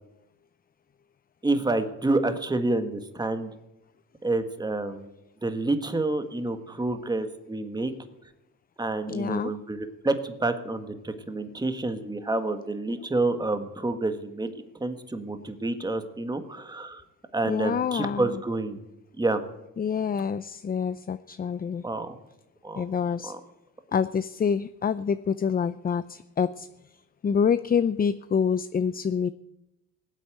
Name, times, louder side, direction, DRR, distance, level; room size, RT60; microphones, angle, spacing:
voice 1, 1.4-3.5 4.2-5.1 5.4-7.9 8.8-14.5 14.8-17.0 17.3-18.8 19.2-19.4 21.8-22.1 22.6-22.8 23.2-23.4, right 2 dB, 15° right, 8 dB, 1.5 m, -28 dB
voice 2, 9.1-9.5 17.4-18.4 19.8-21.8 22.8-23.3 23.9-26.7 27.2-29.3, left 7 dB, 30° left, 14 dB, 0.5 m, -26 dB
18.0 x 8.3 x 9.2 m, 0.91 s
cardioid pair, 90°, 30 cm